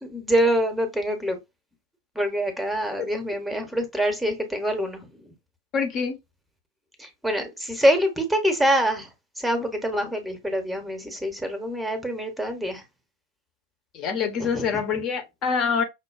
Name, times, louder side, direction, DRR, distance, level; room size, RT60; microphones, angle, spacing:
voice 1, 0.0-1.4 2.1-5.3 7.0-9.1 9.4-12.8 14.4-14.8, equal, 5° right, 0.8 m, -25 dB
voice 2, 5.7-6.2 13.9-15.8, left 6 dB, 35° left, 0.8 m, -25 dB
5.5 x 2.2 x 2.3 m
figure-of-eight pair, 90°, 0 cm